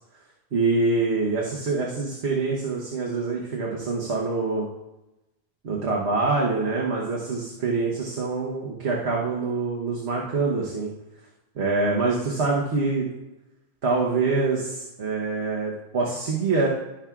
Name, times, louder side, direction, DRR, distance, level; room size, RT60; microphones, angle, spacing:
voice 1, 0.5-4.7 5.6-10.9 11.5-13.1 13.8-16.7, right 3 dB, 75° right, -3 dB, 1.4 m, -25 dB
14.0 x 5.8 x 2.4 m, 0.99 s
omnidirectional pair, 1.1 m